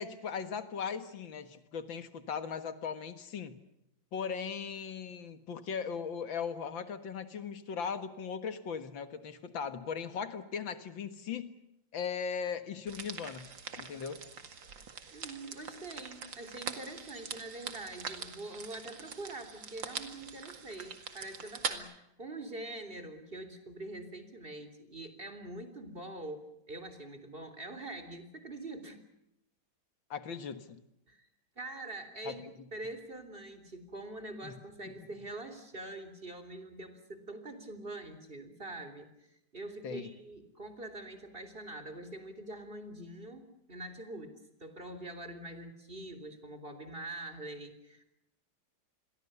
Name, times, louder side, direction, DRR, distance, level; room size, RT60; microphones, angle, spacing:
voice 1, 0.0-3.6 4.1-11.5 11.9-14.3 30.1-30.8 32.3-32.4 34.4-34.6 34.8-34.9 39.8-40.1, left 6 dB, 85° left, 11 dB, 2.4 m, -38 dB
sound 1, 12.9-21.8, right 6 dB, 80° right, 2.8 m, -43 dB
voice 2, 15.1-29.0 31.1-31.3 31.6-39.1 39.5-48.0, right 2 dB, 30° right, 9 dB, 3.7 m, -44 dB
29.5 x 22.5 x 7.0 m, 0.83 s
omnidirectional pair, 2.1 m